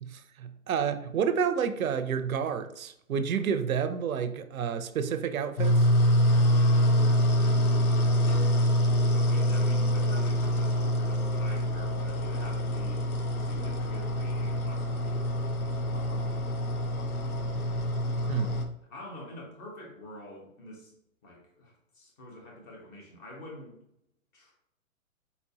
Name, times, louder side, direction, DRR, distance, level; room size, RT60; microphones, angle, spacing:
voice 1, 0.0-5.9 18.3-18.6, right 7 dB, 75° right, 0.6 m, -30 dB
sound 1, 5.6-18.6, equal, 85° left, 0.8 m, -25 dB
voice 2, 6.2-8.3 9.1-13.0 13.4-16.5 17.4-17.9 18.9-20.9 21.2-23.8 24.3-24.5, left 1 dB, 35° left, 1.6 m, -46 dB
4.2 x 4.0 x 2.8 m
hypercardioid pair, 130°, 42 cm